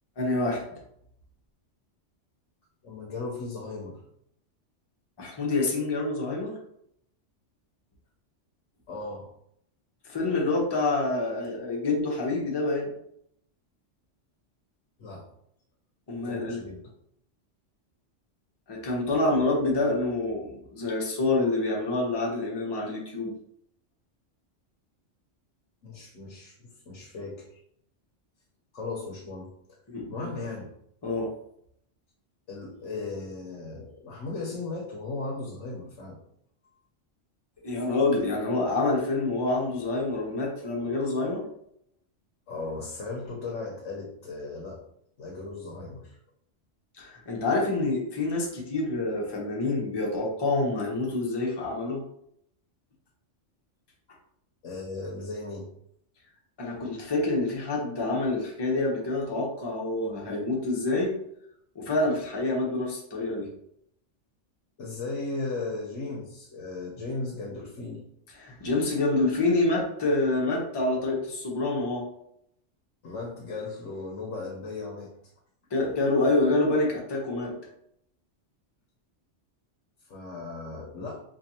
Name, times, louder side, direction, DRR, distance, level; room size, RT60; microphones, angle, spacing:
voice 1, 0.2-0.6 5.2-6.5 10.0-12.9 16.1-16.6 18.7-23.3 29.9-30.3 31.0-31.3 37.6-41.4 47.0-52.0 56.6-61.1 61.7-63.5 68.4-72.1 75.7-77.5, left 2 dB, 25° left, -2 dB, 0.7 m, -27 dB
voice 2, 2.8-4.0 8.9-9.3 15.0-15.2 16.2-16.8 25.8-27.6 28.7-29.8 30.1-30.7 32.5-36.2 42.5-44.8 45.2-46.2 54.6-55.7 64.8-68.0 73.0-75.1 80.1-81.2, left 3 dB, 80° left, -2 dB, 1.1 m, -36 dB
4.4 x 2.6 x 2.7 m, 0.72 s
omnidirectional pair, 1.3 m